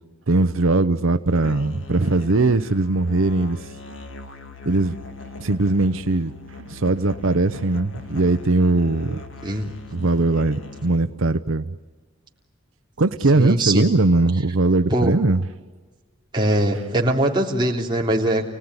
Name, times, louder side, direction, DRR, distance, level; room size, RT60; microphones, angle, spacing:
voice 1, 0.3-3.7 4.7-5.0 5.4-6.3 6.7-9.2 9.9-11.7 13.0-15.4, right 2 dB, 75° right, 10 dB, 0.8 m, -20 dB
Musical instrument, 1.4-11.1, left 3 dB, 70° left, 2.2 m, -39 dB
voice 2, 9.4-9.7 13.3-13.8 14.9-15.1 16.3-18.4, right 1 dB, 20° right, -1 dB, 3.4 m, -21 dB
30.0 x 19.0 x 9.7 m, 1.4 s
head